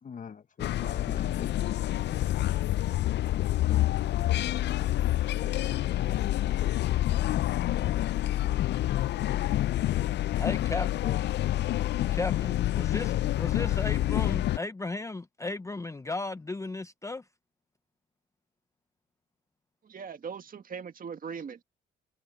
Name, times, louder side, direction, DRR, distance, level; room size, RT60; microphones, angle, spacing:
voice 1, 0.0-1.8 3.5-5.1 10.6-11.2, left 6 dB, 40° left, 1.1 m, -44 dB
sound 1, 0.6-14.6, left 14 dB, 60° left, 0.4 m, -27 dB
voice 2, 10.4-10.9 12.1-17.2, left 3 dB, 15° left, 0.6 m, -35 dB
voice 3, 19.8-21.6, right 6 dB, 45° right, 1.7 m, -40 dB
cardioid pair, 90°, 20 cm